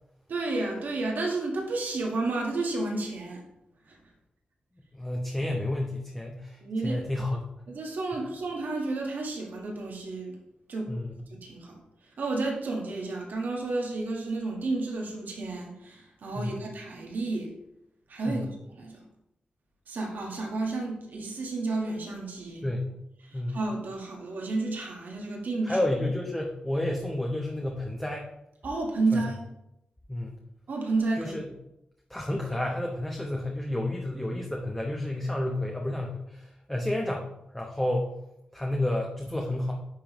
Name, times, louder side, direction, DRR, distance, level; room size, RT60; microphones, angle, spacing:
voice 1, 0.3-3.4 3.9-4.0 6.6-7.0 7.7-10.4 10.7-11.0 11.3-11.8 12.2-17.6 18.1-18.5 18.7-19.1 19.9-22.6 23.3-25.8 28.6-29.4 30.7-31.4, right 3 dB, 75° right, 0 dB, 1.5 m, -31 dB
voice 2, 4.9-7.5 10.9-11.3 16.3-16.6 18.3-18.4 22.6-22.9 23.3-23.6 25.6-28.3 29.1-29.2 30.1-30.4 31.2-31.4 32.1-38.1 38.5-39.7, left 1 dB, 10° left, 0 dB, 0.9 m, -30 dB
10.0 x 3.5 x 3.0 m, 0.84 s
cardioid pair, 55°, 3 cm